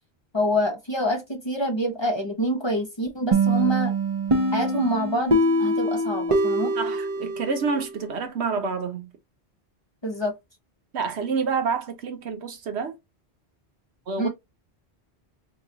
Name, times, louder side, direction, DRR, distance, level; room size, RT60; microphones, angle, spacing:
voice 1, 0.3-3.9 4.5-6.7 10.0-10.3 14.2-14.3, equal, 30° left, 0.7 m, -26 dB
sound 1, 3.3-8.0, right 1 dB, 35° right, 0.7 m, -24 dB
voice 2, 6.8-9.1 10.9-13.0 14.1-14.3, right 5 dB, 80° right, 1.1 m, -28 dB
2.9 x 2.3 x 3.8 m
omnidirectional pair, 1.1 m